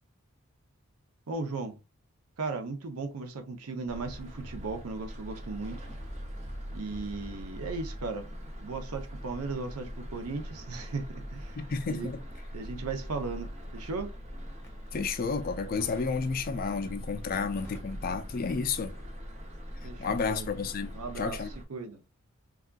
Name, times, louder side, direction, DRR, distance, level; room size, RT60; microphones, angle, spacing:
voice 1, 1.3-1.8 2.4-5.9 6.7-8.3 8.6-11.6 11.9-12.1 12.5-14.1 19.8-20.5 20.9-21.4 21.7-22.0, right 3 dB, 85° right, 0.6 m, -36 dB
sound 1, 3.9-21.6, equal, 30° right, 0.5 m, -42 dB
voice 2, 11.6-12.2 14.9-18.9 20.0-21.5, left 5 dB, 40° left, 0.3 m, -31 dB
Crackle, 12.9-14.0 14.5-15.1 15.8-16.2 16.6-17.0 17.3-19.3 19.5-19.7, left 1 dB, 10° left, 0.8 m, -52 dB
3.5 x 2.3 x 2.2 m
head